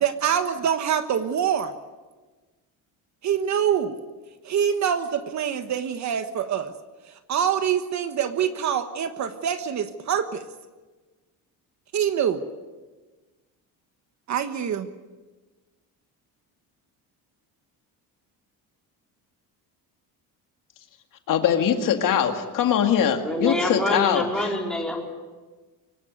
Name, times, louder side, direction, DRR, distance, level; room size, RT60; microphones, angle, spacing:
voice 1, 0.0-1.7 3.2-4.0 4.4-6.7 7.3-10.4 11.9-12.4 14.3-14.9, right 8 dB, 45° right, 9 dB, 1.3 m, -25 dB
voice 2, 21.3-24.6, left 8 dB, 55° left, 5 dB, 2.2 m, -22 dB
voice 3, 23.2-25.0, left 1 dB, ahead, -1 dB, 4.4 m, -26 dB
24.5 x 17.5 x 9.4 m, 1.3 s
cardioid pair, 155°, 38 cm